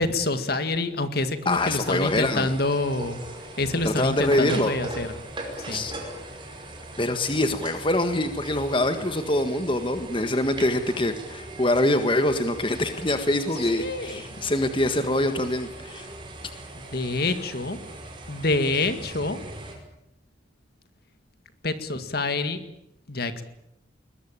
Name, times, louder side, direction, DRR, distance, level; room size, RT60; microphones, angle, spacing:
voice 1, 0.0-3.2 3.6-5.1 5.6-5.9 13.5-14.2 16.7-17.8 18.3-19.4 21.6-22.6 23.1-23.4, left 2 dB, 60° left, 10 dB, 2.0 m, -27 dB
voice 2, 1.5-2.5 3.8-4.8 5.7-5.9 7.0-16.1, left 1 dB, 30° left, 8 dB, 1.6 m, -24 dB
sound 1, 1.5-19.8, right 2 dB, 25° right, 5.4 m, -40 dB
22.0 x 21.0 x 8.9 m, 0.81 s
head